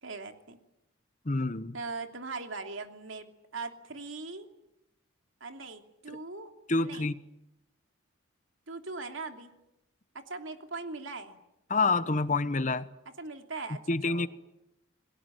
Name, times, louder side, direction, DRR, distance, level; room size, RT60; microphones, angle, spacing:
voice 1, 0.0-0.6 1.7-4.5 5.4-6.5 6.8-7.1 8.7-9.5 10.1-11.4 13.2-14.3, right 3 dB, 75° right, 2.9 m, -40 dB
voice 2, 1.3-1.7 6.7-7.1 11.7-12.8 13.9-14.3, left 3 dB, 35° left, 1.0 m, -27 dB
29.0 x 21.0 x 9.3 m
head